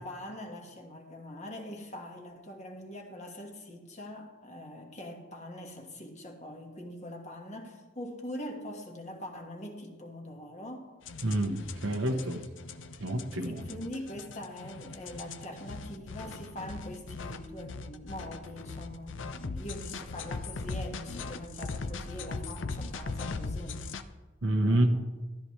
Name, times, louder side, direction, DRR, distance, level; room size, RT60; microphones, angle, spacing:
voice 1, 0.0-10.9 13.4-23.8 24.6-25.1, left 1 dB, 35° left, 2 dB, 1.6 m, -43 dB
sound 1, 11.1-24.0, left 3 dB, 70° left, 0.6 m, -39 dB
voice 2, 11.2-12.4 13.0-13.6 24.4-24.9, right 1 dB, 80° right, 4 dB, 0.9 m, -28 dB
13.5 x 13.5 x 3.2 m, 1.3 s
head